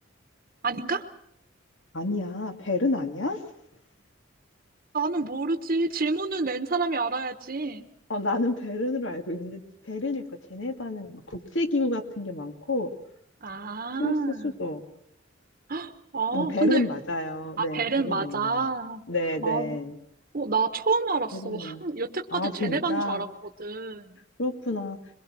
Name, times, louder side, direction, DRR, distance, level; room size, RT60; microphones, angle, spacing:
voice 1, 0.6-1.0 4.9-7.9 13.4-14.6 15.7-16.8 17.6-19.0 19.4-19.7 20.3-23.3 23.6-24.2, right 3 dB, 45° right, 6 dB, 1.1 m, -28 dB
voice 2, 1.9-3.4 8.1-12.9 14.0-14.1 14.4-14.8 16.3-18.6 19.1-20.0 21.3-21.8 22.3-23.3 24.4-25.0, left 2 dB, 70° left, 5 dB, 2.2 m, -29 dB
23.0 x 22.5 x 6.2 m, 0.73 s
head